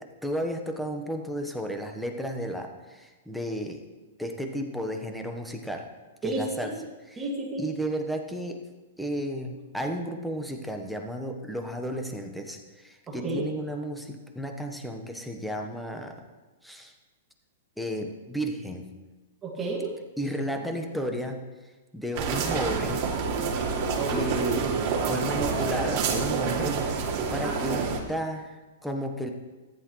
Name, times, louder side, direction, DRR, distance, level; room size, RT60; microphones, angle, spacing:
voice 1, 0.2-3.8 4.2-5.9 6.2-6.7 7.1-7.2 7.6-8.6 9.0-16.2 16.6-16.9 17.8-18.9 20.2-21.4 21.9-23.1 24.1-26.8 27.3-29.3, equal, ahead, 3 dB, 1.2 m, -33 dB
voice 2, 6.2-6.8 7.2-7.7 13.1-13.4 19.4-20.0 23.4-23.9 27.3-27.6, right 2 dB, 20° right, -3 dB, 2.2 m, -32 dB
sound 1, 22.1-28.0, right 5 dB, 45° right, 2.7 m, -27 dB
14.5 x 11.0 x 3.2 m, 1.2 s
hypercardioid pair, 125°, 0 cm